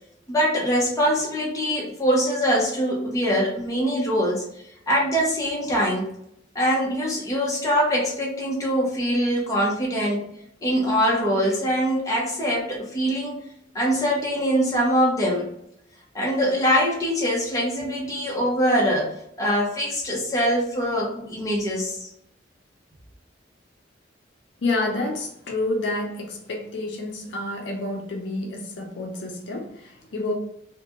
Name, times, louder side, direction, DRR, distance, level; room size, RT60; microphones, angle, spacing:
voice 1, 0.3-4.4 4.9-6.1 6.5-10.3 10.6-13.4 13.7-15.5 16.1-19.1 19.4-22.0, equal, 20° left, 0.7 m, -23 dB
voice 2, 24.6-30.3, left 2 dB, 70° left, 0.5 m, -29 dB
2.4 x 2.1 x 2.8 m
head